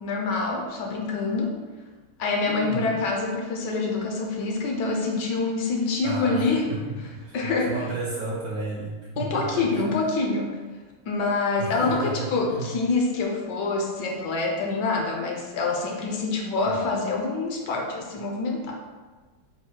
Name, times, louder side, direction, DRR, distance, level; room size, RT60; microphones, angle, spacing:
voice 1, 0.0-1.6 2.2-6.7 7.3-7.8 9.2-10.6 11.1-18.8, left 3 dB, 75° left, 1 dB, 1.1 m, -26 dB
voice 2, 2.5-3.0 6.0-9.9 11.6-12.7 16.6-16.8, right 3 dB, 70° right, -4 dB, 0.9 m, -33 dB
4.3 x 2.0 x 4.4 m, 1.3 s
omnidirectional pair, 2.1 m